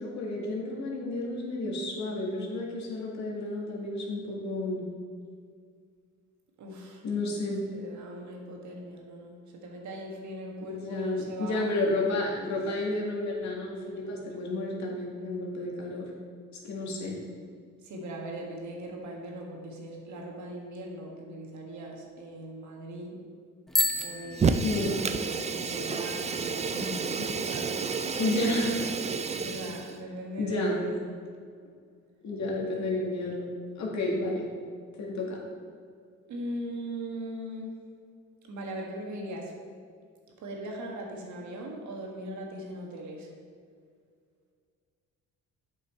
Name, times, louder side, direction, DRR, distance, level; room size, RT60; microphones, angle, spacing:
voice 1, 0.0-4.8 7.0-7.6 10.7-16.1 16.6-17.2 24.6-25.0 28.2-28.7 30.4-30.8 32.2-34.5 35.0-35.4, left 2 dB, 65° left, -2 dB, 1.9 m, -31 dB
voice 2, 6.6-7.0 7.7-11.8 17.8-23.2 24.0-27.8 28.0-28.3 29.3-31.0 36.3-37.8 38.5-39.6 40.4-43.3, right 1 dB, 70° right, 0 dB, 1.6 m, -40 dB
Bicycle bell, 23.7-25.4, left 1 dB, ahead, 0.7 m, -31 dB
Fire, 24.3-30.0, right 5 dB, 25° right, 0.4 m, -30 dB
8.1 x 5.5 x 4.4 m, 2.1 s
cardioid pair, 90°, 30 cm